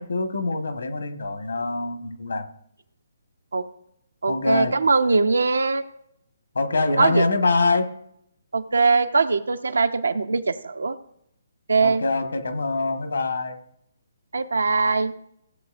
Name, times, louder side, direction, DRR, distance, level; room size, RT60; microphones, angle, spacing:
voice 1, 0.0-2.5 4.3-4.8 6.5-7.9 11.8-13.6, left 3 dB, 75° left, 6 dB, 1.4 m, -24 dB
voice 2, 4.2-5.8 7.0-7.3 8.5-11.0 11.7-12.0 14.3-15.1, right 4 dB, 75° right, 9 dB, 0.7 m, -21 dB
16.5 x 7.9 x 2.5 m, 0.72 s
figure-of-eight pair, 140°, 0 cm